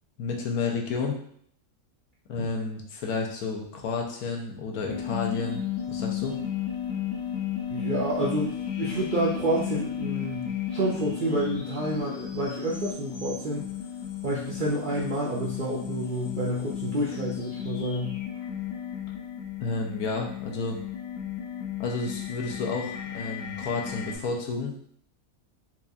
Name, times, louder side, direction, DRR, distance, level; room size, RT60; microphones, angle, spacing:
voice 1, 0.2-1.2 2.3-5.6 5.9-6.4 19.6-20.8 21.8-24.7, left 4 dB, 85° left, 0 dB, 1.2 m, -31 dB
sound 1, 4.9-24.2, left 9 dB, 60° left, 0.7 m, -34 dB
voice 2, 7.7-13.7 14.2-18.1, right 1 dB, 75° right, -5 dB, 0.4 m, -29 dB
4.5 x 2.3 x 2.6 m, 0.64 s
omnidirectional pair, 1.5 m